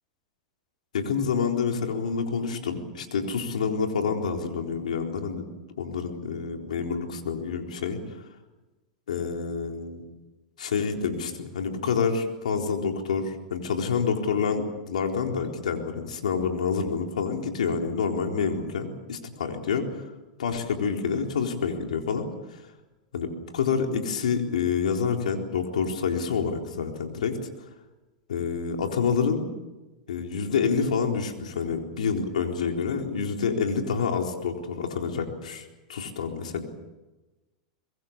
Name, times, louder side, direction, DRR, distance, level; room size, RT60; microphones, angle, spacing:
voice 1, 0.9-5.5 5.8-8.3 9.1-10.0 10.6-20.1 20.4-22.6 23.1-27.4 28.3-29.5 30.1-36.7, left 5 dB, 90° left, 3 dB, 4.0 m, -28 dB
25.5 x 21.5 x 7.4 m, 1.1 s
hypercardioid pair, 120°, 4 cm